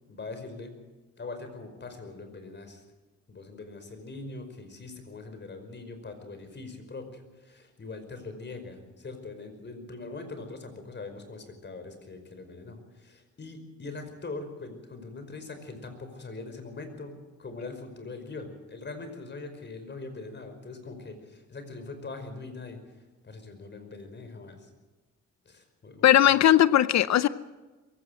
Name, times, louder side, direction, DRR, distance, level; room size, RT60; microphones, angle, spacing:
voice 1, 0.1-0.7 1.2-2.8 3.3-22.8 23.2-24.7 25.5-26.1, left 3 dB, 35° left, 8 dB, 5.2 m, -42 dB
voice 2, 26.0-27.3, left 12 dB, 60° left, 15 dB, 0.7 m, -19 dB
23.0 x 15.5 x 7.9 m, 1.2 s
cardioid pair, 90°, 30 cm